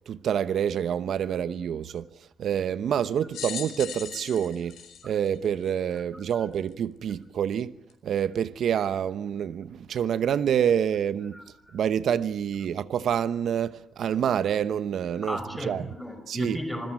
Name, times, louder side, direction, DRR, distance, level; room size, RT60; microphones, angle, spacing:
voice 1, 0.1-2.1 2.4-4.8 5.0-7.7 8.0-11.4 11.7-15.8 16.3-16.6, right 9 dB, 70° right, 1.0 m, -27 dB
sound 1, 3.3-6.0 6.7-6.8 7.9-8.0, left 9 dB, 85° left, 5.3 m, -39 dB
voice 2, 5.9-6.5 11.3-11.8 15.1-16.9, left 1 dB, ahead, 5.2 m, -36 dB
27.0 x 21.0 x 9.0 m
cardioid pair, 120°, 0 cm